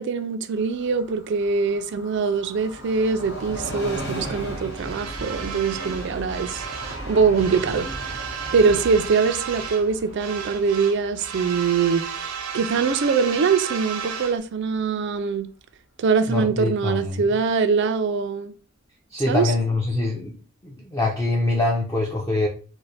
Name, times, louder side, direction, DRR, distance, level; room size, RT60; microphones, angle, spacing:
voice 1, 0.0-6.6 7.1-7.9 8.5-15.5 16.0-18.5 19.3-19.5, right 5 dB, 55° right, 0.3 m, -23 dB
Train, 0.5-13.9 14.2-14.3, right 1 dB, 70° left, 1.3 m, -37 dB
sound 1, 4.7-7.0 7.3-9.9 10.2-14.4, right 7 dB, 85° right, 0.6 m, -34 dB
voice 2, 16.3-17.2 19.1-20.4 20.6-22.5, left 2 dB, 15° left, 0.5 m, -24 dB
3.1 x 2.1 x 4.0 m
head